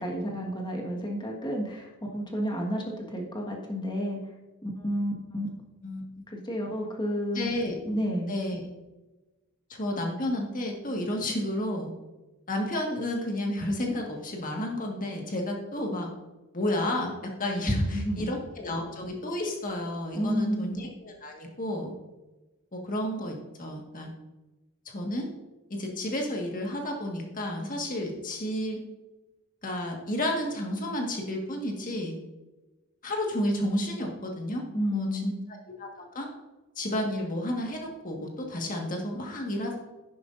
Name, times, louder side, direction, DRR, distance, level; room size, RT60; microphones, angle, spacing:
voice 1, 0.0-4.2 4.6-5.5 6.3-7.5 7.8-8.3 17.7-18.3 20.1-20.7 34.7-35.4, equal, 20° left, 0 dB, 1.6 m, -31 dB
voice 2, 5.8-6.2 7.3-7.7 8.3-8.6 9.7-11.9 12.5-16.1 16.5-17.1 17.4-21.9 22.7-24.1 24.8-25.3 25.7-28.8 29.6-32.2 33.0-34.6 34.9-36.3 36.7-39.8, left 1 dB, 40° left, 1 dB, 1.7 m, -31 dB
11.0 x 10.5 x 2.6 m, 1.1 s
head